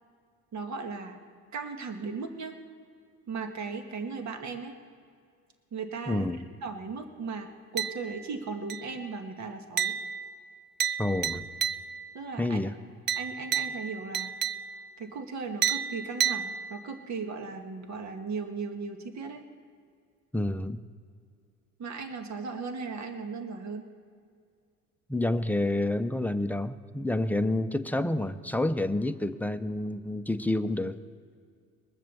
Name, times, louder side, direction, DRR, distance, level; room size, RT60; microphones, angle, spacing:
voice 1, 0.5-1.2 1.5-2.6 3.3-4.7 5.7-6.3 6.6-10.0 12.1-12.6 13.1-14.3 15.0-19.4 21.8-23.9, right 4 dB, 50° right, 5 dB, 1.8 m, -37 dB
voice 2, 6.1-6.4 11.0-11.4 12.4-12.7 20.3-20.8 25.1-31.0, left 1 dB, 5° left, 9 dB, 0.7 m, -28 dB
sound 1, 7.8-8.3 8.7-9.1 9.8-12.2 13.1-15.0 15.6-17.0, right 8 dB, 30° right, 0.4 m, -32 dB
21.5 x 7.5 x 7.0 m, 2.2 s
supercardioid pair, 80°, 36 cm